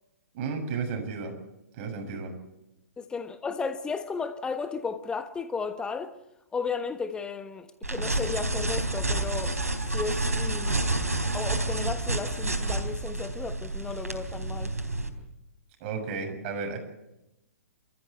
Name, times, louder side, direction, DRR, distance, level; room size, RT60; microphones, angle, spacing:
voice 1, 0.3-1.3 1.8-2.3 15.8-16.8, right 5 dB, 40° right, 6.9 m, -33 dB
voice 2, 3.0-6.2 6.5-9.6 9.9-11.1 11.3-14.7, left 5 dB, 10° left, 1.3 m, -34 dB
sound 1, 7.8-15.1, right 2 dB, 90° right, 3.8 m, -29 dB
29.0 x 14.5 x 8.2 m
figure-of-eight pair, 120°, 8 cm